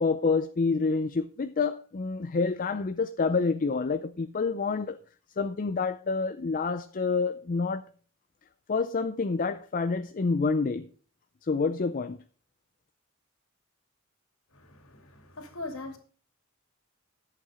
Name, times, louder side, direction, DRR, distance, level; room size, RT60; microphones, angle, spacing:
voice 1, 0.0-5.0 5.4-7.9 8.7-10.9 11.4-12.2, left 4 dB, 40° left, 0.5 m, -28 dB
voice 2, 14.5-16.0, left 2 dB, 85° left, 2.5 m, -41 dB
11.0 x 8.3 x 4.9 m
head